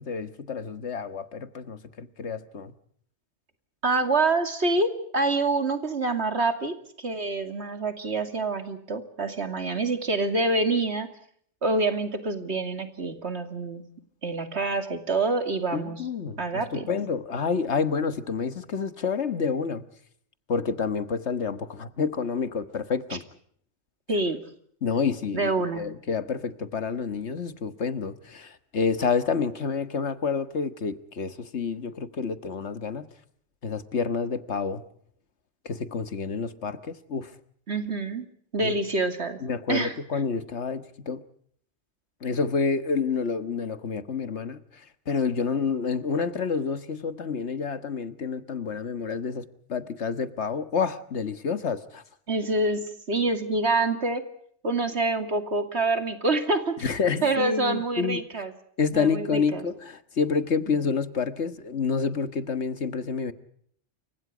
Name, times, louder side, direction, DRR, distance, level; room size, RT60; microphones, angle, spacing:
voice 1, 0.0-2.7 15.7-19.8 20.5-23.2 24.8-33.1 33.6-34.8 35.6-37.3 38.6-38.7 39.4-41.2 42.2-52.0 56.8-58.2 58.8-63.3, left 5 dB, 80° left, 1.7 m, -29 dB
voice 2, 3.8-11.1 11.6-13.8 14.2-16.0 16.4-16.9 24.1-24.4 25.3-25.8 37.7-38.3 38.5-39.4 39.7-40.0 52.3-54.2 54.6-56.9 57.2-58.5 58.9-59.6 60.8-60.9, right 3 dB, 70° right, 2.8 m, -26 dB
29.0 x 24.5 x 5.0 m
omnidirectional pair, 1.2 m